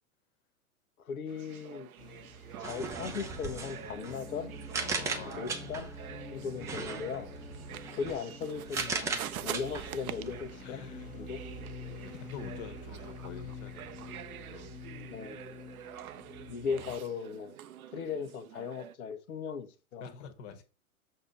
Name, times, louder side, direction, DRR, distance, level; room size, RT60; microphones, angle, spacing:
voice 1, 1.0-1.9 2.6-4.5 5.2-5.9 6.3-7.3 7.9-10.8 11.1-11.4 15.1-15.4 16.5-17.6 17.9-20.0, left 6 dB, 80° left, 1.1 m, -38 dB
sound 1, 1.3-18.9, right 11 dB, 80° right, 0.7 m, -46 dB
sound 2, 2.0-16.9, left 1 dB, 20° left, 1.1 m, -47 dB
sound 3, 2.6-6.0 6.6-10.5, right 4 dB, 10° right, 0.4 m, -38 dB
voice 2, 4.8-5.7 6.4-6.6 7.3-7.5 10.6-11.2 12.0-14.0 14.5-14.8 15.1-15.5 16.7-16.9 20.0-20.6, left 6 dB, 50° left, 1.5 m, -47 dB
6.7 x 2.9 x 5.2 m
hypercardioid pair, 120°, 42 cm